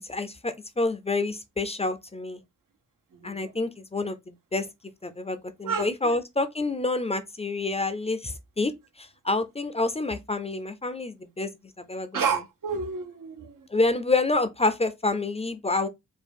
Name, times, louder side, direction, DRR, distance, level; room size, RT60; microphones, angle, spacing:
voice 1, 0.1-2.4 3.2-4.7 5.0-11.5 11.8-12.2 13.7-15.9, left 3 dB, 20° left, 0.4 m, -28 dB
voice 2, 3.1-3.5 5.6-5.9 12.1-13.6, right 6 dB, 85° right, 0.9 m, -30 dB
4.5 x 2.3 x 3.4 m
wide cardioid pair, 125°, 32 cm